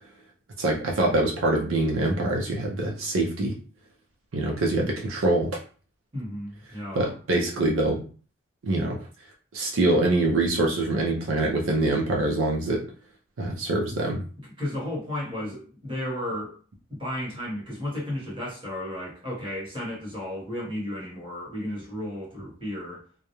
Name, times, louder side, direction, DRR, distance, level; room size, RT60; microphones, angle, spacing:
voice 1, 0.6-3.5 4.3-5.5 6.9-8.0 8.6-9.0 9.5-12.8 13.4-14.2, right 2 dB, 75° right, -1 dB, 0.5 m, -24 dB
voice 2, 6.1-7.1 14.4-16.6 16.9-23.0, left 1 dB, 25° right, -4 dB, 1.0 m, -33 dB
2.3 x 2.0 x 2.9 m, 0.39 s
head